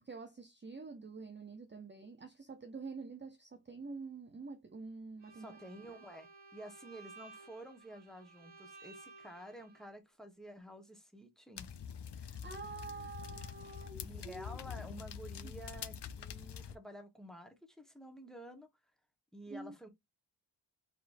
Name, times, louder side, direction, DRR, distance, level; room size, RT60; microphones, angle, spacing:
voice 1, 0.0-5.6 5.9-6.0 12.1-14.6 15.4-15.5 19.5-19.8, right 4 dB, 25° right, 0.6 m, -47 dB
Bowed string instrument, 5.2-9.9, right 3 dB, 60° right, 1.4 m, -56 dB
voice 2, 5.4-11.7 13.3-13.4 14.0-18.7 19.3-19.9, right 1 dB, ahead, 1.2 m, -51 dB
sound 1, 11.6-16.8, left 7 dB, 60° left, 0.6 m, -45 dB
4.4 x 3.7 x 2.5 m
wide cardioid pair, 90°, 47 cm